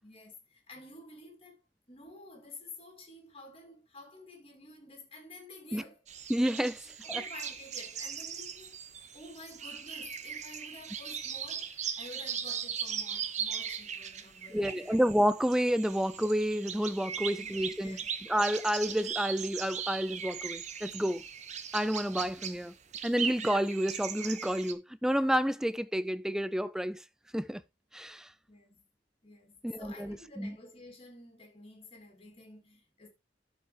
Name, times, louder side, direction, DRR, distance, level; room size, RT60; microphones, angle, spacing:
voice 1, 0.0-1.6 1.9-6.1 7.0-8.8 9.1-15.0 17.2-18.1 28.5-28.8 29.2-33.1, left 2 dB, 30° left, 2.9 m, -51 dB
sound 1, 6.1-24.7, right 7 dB, 40° right, 0.9 m, -39 dB
voice 2, 6.3-7.2 14.5-18.0 18.3-21.2 21.7-22.7 23.0-27.0 27.3-27.6 27.9-28.3 29.6-30.6, equal, 5° right, 0.3 m, -30 dB
12.5 x 5.3 x 3.3 m
head